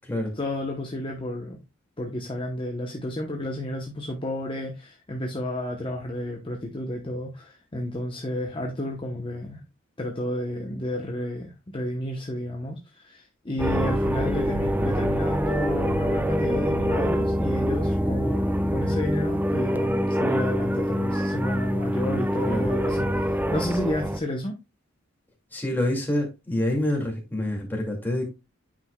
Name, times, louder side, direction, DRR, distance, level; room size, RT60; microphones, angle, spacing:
voice 1, 0.4-1.6 2.0-9.6 10.0-24.6, left 1 dB, 25° left, 0.9 m, -31 dB
sound 1, 13.6-24.2, equal, 10° right, 0.4 m, -25 dB
voice 2, 25.5-28.2, left 1 dB, 10° left, 2.2 m, -27 dB
8.9 x 5.7 x 2.3 m
head